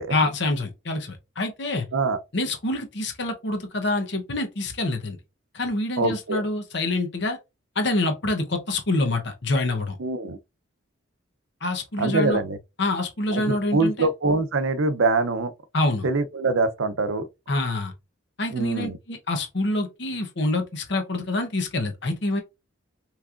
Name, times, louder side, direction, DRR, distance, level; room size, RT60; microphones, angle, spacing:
voice 1, 0.1-1.9 2.3-5.2 5.5-7.4 7.8-10.0 11.6-12.4 12.8-14.1 15.7-16.1 17.5-17.9 18.4-22.4, left 2 dB, 60° left, 0.9 m, -26 dB
voice 2, 6.0-6.4 10.0-10.4 12.0-12.6 13.3-15.5 16.0-17.3 18.5-19.0, right 3 dB, 80° right, 0.6 m, -24 dB
6.0 x 3.2 x 2.5 m
head